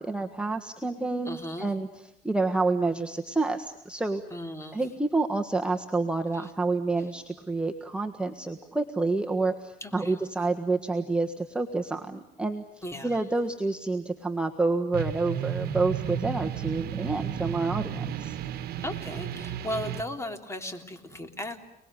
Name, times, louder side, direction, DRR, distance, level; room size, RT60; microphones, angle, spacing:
voice 1, 0.0-1.9 2.2-4.2 4.7-12.6 13.0-18.4, right 3 dB, 5° right, 3 dB, 1.5 m, -28 dB
voice 2, 1.2-1.7 4.3-4.9 6.3-6.5 9.8-10.2 12.8-13.2 18.8-21.7, left 1 dB, 15° left, 6 dB, 3.3 m, -36 dB
sound 1, 14.9-20.0, right 9 dB, 65° right, 1.4 m, -33 dB
29.5 x 20.5 x 9.8 m, 0.86 s
cardioid pair, 110°, 17 cm